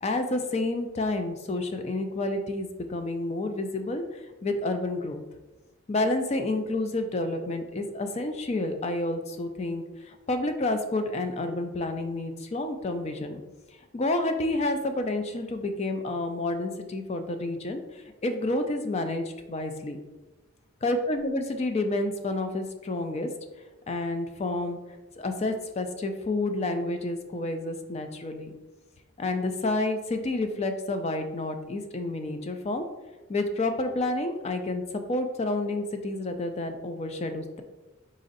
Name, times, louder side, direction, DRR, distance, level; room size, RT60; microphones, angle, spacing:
voice 1, 0.0-5.2 5.9-13.4 13.9-20.0 20.8-23.3 23.9-24.8 25.2-28.5 29.2-32.8 33.3-37.6, left 2 dB, 30° left, 7 dB, 0.3 m, -29 dB
4.0 x 2.6 x 3.9 m, 1.1 s
head